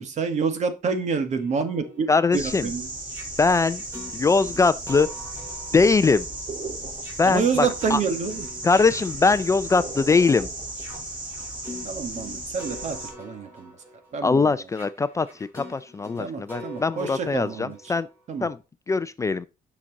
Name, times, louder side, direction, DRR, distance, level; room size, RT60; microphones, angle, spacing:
voice 1, 0.0-2.1 2.3-2.9 7.2-8.4 11.8-13.7 14.1-14.5 16.2-17.8 18.3-18.5, right 5 dB, 50° right, 1.6 m, -28 dB
sound 1, 1.4-10.2 10.7-18.5, left 1 dB, 15° right, 5.3 m, -45 dB
voice 2, 2.1-2.7 3.4-3.8 4.1-5.1 5.7-6.3 7.2-8.0 8.6-10.5 14.2-18.1 18.4-18.6 18.9-19.5, left 4 dB, 20° left, 0.4 m, -21 dB
sound 2, 2.3-13.1, right 2 dB, 35° right, 4.6 m, -35 dB
8.9 x 6.0 x 4.0 m
cardioid pair, 135°, 15 cm